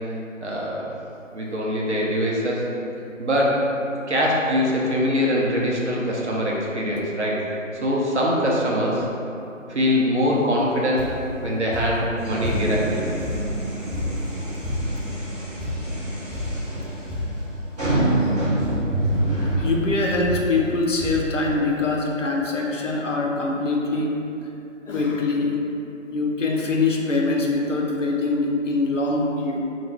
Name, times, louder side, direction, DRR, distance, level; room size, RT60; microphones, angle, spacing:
voice 1, 0.4-0.9 1.3-2.7 3.2-3.7 4.1-7.4 7.7-9.1 9.7-11.1 11.4-13.1, equal, 60° right, -4 dB, 0.8 m, -23 dB
sound 1, 11.0-11.4 11.7-12.9 13.2-15.1 15.6-16.0 16.3-16.7 17.1-17.5 17.8-18.3 18.6-19.1 19.4-19.7 20.2-20.7 21.0-21.4 22.1-22.2 22.4-22.5, left 1 dB, ahead, 0.4 m, -30 dB
sound 2, 12.2-20.4, right 1 dB, 30° right, 1.4 m, -27 dB
voice 2, 19.4-24.2 24.9-25.6 26.1-29.6, left 3 dB, 70° left, -1 dB, 0.7 m, -23 dB
3.7 x 2.5 x 3.5 m, 2.8 s
figure-of-eight pair, 155°, 39 cm